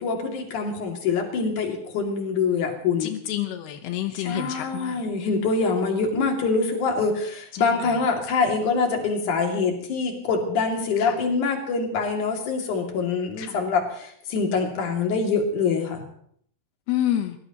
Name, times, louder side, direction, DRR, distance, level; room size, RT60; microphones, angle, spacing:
voice 1, 0.0-3.1 4.1-16.0, left 4 dB, 55° left, 2 dB, 3.8 m, -25 dB
voice 2, 3.0-5.0 11.0-11.1 13.4-13.6 16.9-17.4, left 12 dB, 90° left, 7 dB, 3.0 m, -28 dB
24.0 x 19.0 x 3.0 m, 0.65 s
omnidirectional pair, 4.5 m